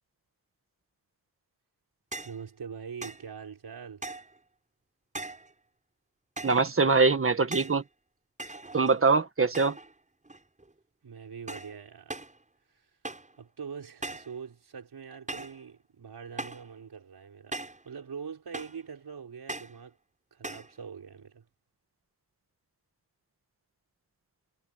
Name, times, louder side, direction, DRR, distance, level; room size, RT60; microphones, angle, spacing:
sound 1, 2.1-2.4 3.0-3.3 4.0-4.4 5.1-5.5 6.4-6.7 7.5-7.8 8.4-9.0 9.5-9.9 10.2-10.7 11.5-11.8 12.1-12.4 13.0-13.4 14.0-14.4 15.3-15.6 16.4-16.7 17.5-17.9 18.5-18.9 19.5-19.8 20.4-20.7, right 2 dB, 20° right, 7.9 m, -40 dB
voice 1, 2.2-4.1 11.0-12.2 12.7-12.9 13.4-20.0 20.3-21.4, right 6 dB, 80° right, 4.9 m, -43 dB
voice 2, 6.4-7.8 8.7-9.8, right 4 dB, 35° right, 1.6 m, -23 dB
wide cardioid pair, 155°, 39 cm